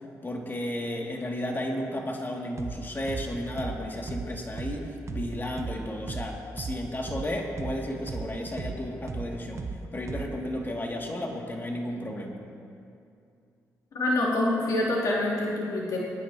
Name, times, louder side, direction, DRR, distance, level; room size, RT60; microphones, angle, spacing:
voice 1, 0.2-9.6 9.9-12.4, left 1 dB, 30° left, 0 dB, 2.4 m, -33 dB
sound 1, 2.6-2.8 3.1-6.8 7.1-10.5, right 4 dB, 45° right, 0.9 m, -36 dB
voice 2, 13.9-16.0, left 1 dB, 60° left, -7 dB, 3.2 m, -26 dB
23.0 x 10.0 x 2.9 m, 2.5 s
supercardioid pair, 55°, 7 cm